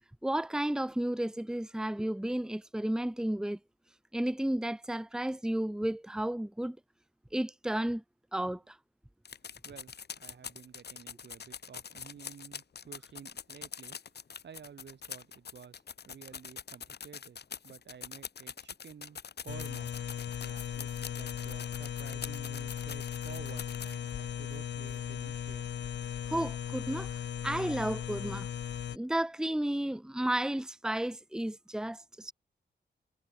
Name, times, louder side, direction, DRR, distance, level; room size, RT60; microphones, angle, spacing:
voice 1, 0.2-3.6 4.1-6.8 7.3-8.0 8.3-8.8 26.3-27.1 27.4-28.5 28.9-32.3, right 1 dB, 5° right, 1.2 m, -32 dB
sound 1, 9.2-24.1 24.5-24.6 24.9-25.0, left 7 dB, 70° left, 6.1 m, -44 dB
voice 2, 9.6-14.0 14.4-17.4 17.6-19.9 20.4-25.9, right 7 dB, 80° right, 4.6 m, -52 dB
sound 2, 19.5-29.0, left 9 dB, 85° left, 0.8 m, -37 dB
wide cardioid pair, 155°, 18 cm